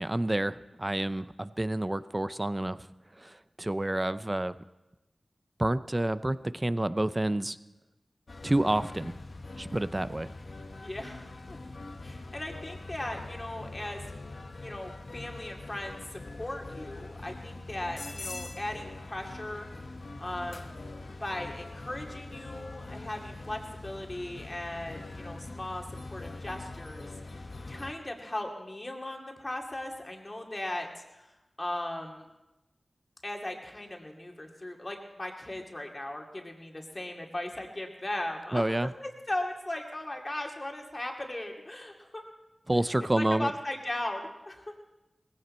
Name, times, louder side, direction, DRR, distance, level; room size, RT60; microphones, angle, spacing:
voice 1, 0.0-2.9 3.2-4.5 5.6-7.6 8.4-9.1 9.6-10.3 38.5-38.9 42.7-43.5, right 1 dB, 20° right, 14 dB, 0.5 m, -29 dB
sound 1, 8.3-27.9, left 2 dB, 65° left, 1.1 m, -43 dB
voice 2, 10.8-11.6 12.0-14.0 14.6-19.7 20.2-20.8 21.2-25.8 26.1-27.1 27.7-31.3 31.6-32.3 33.2-38.6 39.0-42.2 43.2-44.6, left 1 dB, 30° left, 1 dB, 2.2 m, -37 dB
19.5 x 16.0 x 4.3 m, 1.0 s
wide cardioid pair, 80°, 0 cm